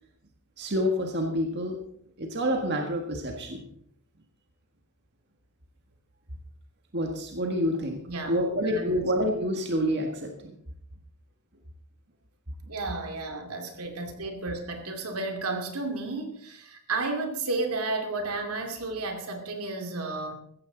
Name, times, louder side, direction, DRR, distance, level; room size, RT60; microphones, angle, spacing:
voice 1, 0.6-1.8 2.2-3.7 6.9-8.0 8.3-10.6, equal, 50° right, 2 dB, 1.7 m, -28 dB
voice 2, 8.6-9.0 12.7-20.3, right 3 dB, 80° right, 4 dB, 2.6 m, -32 dB
15.5 x 14.5 x 4.0 m, 0.68 s
head